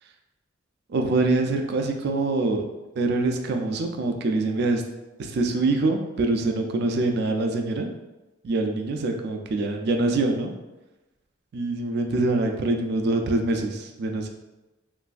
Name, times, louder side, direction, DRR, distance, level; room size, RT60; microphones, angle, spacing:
voice 1, 0.9-2.7 3.0-4.8 5.2-7.9 8.4-10.5 11.5-14.3, right 2 dB, 55° right, 4 dB, 0.3 m, -24 dB
3.1 x 2.5 x 2.3 m, 1.1 s
head